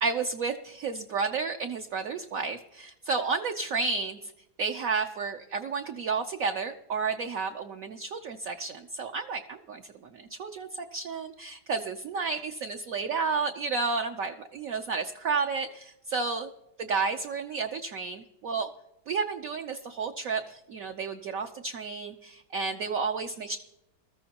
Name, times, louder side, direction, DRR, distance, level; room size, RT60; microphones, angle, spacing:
voice 1, 0.0-4.3 4.6-9.8 10.1-16.5 16.8-18.7 19.1-23.6, right 4 dB, 65° right, 4 dB, 0.8 m, -31 dB
21.0 x 14.0 x 2.9 m, 0.87 s
omnidirectional pair, 2.1 m